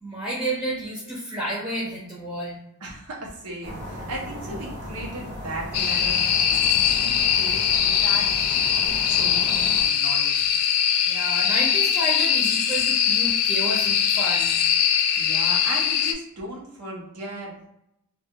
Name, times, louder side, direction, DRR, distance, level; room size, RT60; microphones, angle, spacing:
voice 1, 0.0-2.6 11.1-14.6, right 1 dB, 15° right, -6 dB, 0.6 m, -30 dB
voice 2, 2.8-7.6 8.0-10.5 14.9-17.7, right 1 dB, 90° right, -2 dB, 0.8 m, -37 dB
sound 1, 3.6-9.9, equal, 50° right, 0.6 m, -36 dB
sound 2, 5.7-16.1, left 8 dB, 80° left, 0.3 m, -21 dB
2.3 x 2.3 x 2.8 m, 0.80 s
head